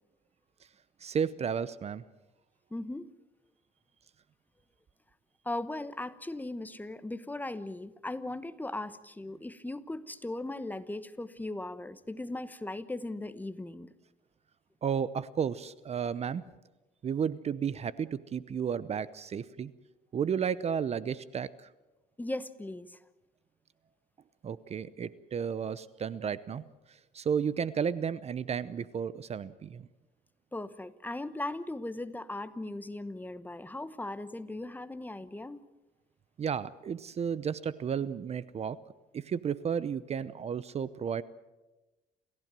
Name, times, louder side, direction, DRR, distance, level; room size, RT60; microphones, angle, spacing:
voice 1, 1.0-2.0 14.8-16.4 17.0-19.7 20.1-21.5 24.4-26.6 27.1-29.8 36.4-38.8 39.1-41.2, right 7 dB, 40° right, 17 dB, 0.8 m, -33 dB
voice 2, 2.7-3.1 5.4-13.9 22.2-23.0 30.5-35.6, left 2 dB, 10° left, 13 dB, 1.0 m, -38 dB
29.0 x 15.5 x 7.6 m, 1.1 s
cardioid pair, 110°, 17 cm